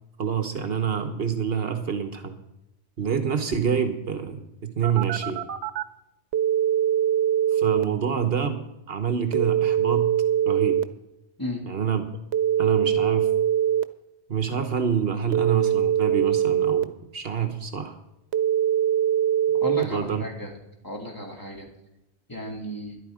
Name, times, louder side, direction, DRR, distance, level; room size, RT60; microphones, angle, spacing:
voice 1, 0.2-2.4 3.0-5.4 7.5-10.1 10.4-10.8 11.7-12.0 12.6-13.3 14.3-18.0 19.8-20.2, right 7 dB, 65° right, 8 dB, 1.2 m, -27 dB
Telephone, 4.8-5.8 6.3-7.8 9.3-10.8 12.3-13.8 15.3-16.8 18.3-19.8, right 10 dB, 90° right, 1.0 m, -22 dB
voice 2, 19.6-20.5 20.8-21.7 22.3-23.0, equal, 20° left, 0 dB, 2.7 m, -33 dB
13.0 x 11.0 x 4.9 m, 0.89 s
omnidirectional pair, 1.1 m